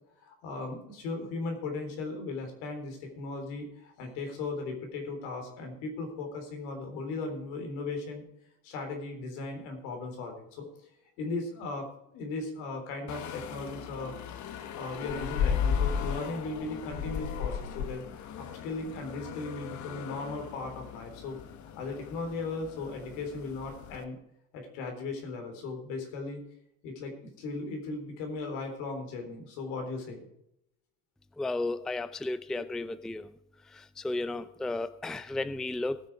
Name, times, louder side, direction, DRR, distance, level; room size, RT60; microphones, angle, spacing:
voice 1, 0.2-8.2 8.6-10.9 11.2-14.2 14.6-21.4 21.8-24.2 24.5-26.4 26.8-30.3 31.8-31.9 32.5-32.9 34.3-34.5, left 3 dB, 85° left, 4 dB, 3.7 m, -37 dB
sound 1, 13.1-24.0, left 7 dB, 55° left, 1.3 m, -36 dB
voice 2, 31.4-33.3 33.7-36.0, left 2 dB, ahead, 14 dB, 0.4 m, -33 dB
18.5 x 6.8 x 4.7 m, 0.78 s
cardioid pair, 115°, 35 cm